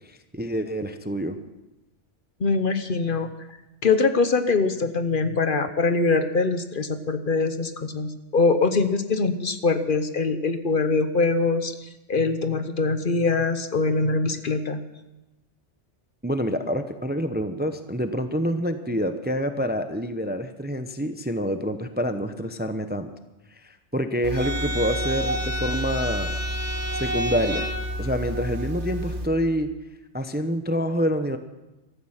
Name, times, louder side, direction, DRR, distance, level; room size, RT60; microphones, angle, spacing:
voice 1, 0.3-1.4 16.2-23.1 23.9-26.3 26.9-27.7 28.0-29.7 30.1-31.4, equal, 10° right, 8 dB, 0.6 m, -27 dB
voice 2, 2.4-3.3 3.8-14.8, left 4 dB, 50° left, 10 dB, 1.0 m, -23 dB
sound 1, 24.2-29.3, equal, 70° right, 2.0 m, -28 dB
15.5 x 13.5 x 5.8 m, 1.0 s
omnidirectional pair, 1.2 m